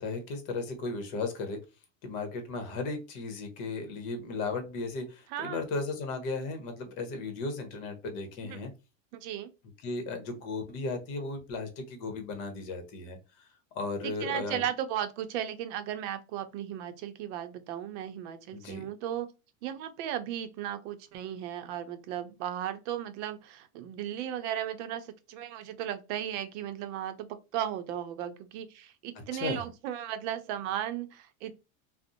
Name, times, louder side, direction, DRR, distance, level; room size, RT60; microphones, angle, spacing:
voice 1, 0.0-1.6 2.0-8.7 9.8-13.2 13.7-14.7 18.5-18.8 29.3-29.6, left 3 dB, 55° left, 1.0 m, -35 dB
voice 2, 5.3-5.6 8.4-8.7 9.1-9.5 14.0-19.3 19.6-31.5, right 10 dB, 60° right, 0.6 m, -36 dB
2.5 x 2.1 x 2.6 m
supercardioid pair, 130°, 40 cm